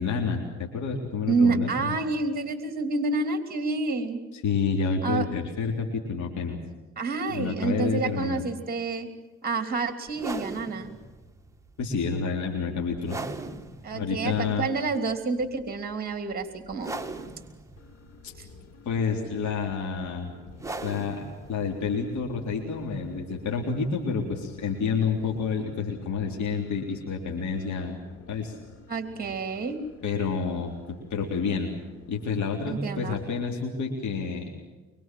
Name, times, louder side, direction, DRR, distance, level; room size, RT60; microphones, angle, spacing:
voice 1, 0.0-2.0 4.3-6.6 7.3-8.4 11.8-13.3 13.9-14.7 18.2-18.3 18.9-20.3 20.8-28.0 28.3-28.6 30.0-31.7 32.1-34.5, left 5 dB, 70° left, 0 dB, 3.6 m, -29 dB
voice 2, 1.3-4.2 5.0-5.3 7.0-9.1 9.4-11.0 13.8-16.9 28.9-29.8 32.7-33.2, right 4 dB, 30° right, 8 dB, 3.1 m, -28 dB
sound 1, 10.1-25.4, right 3 dB, 10° right, 2.3 m, -42 dB
sound 2, 17.8-33.4, left 5 dB, 55° left, 3.7 m, -51 dB
24.5 x 23.5 x 7.7 m, 1.2 s
cardioid pair, 90°, 30 cm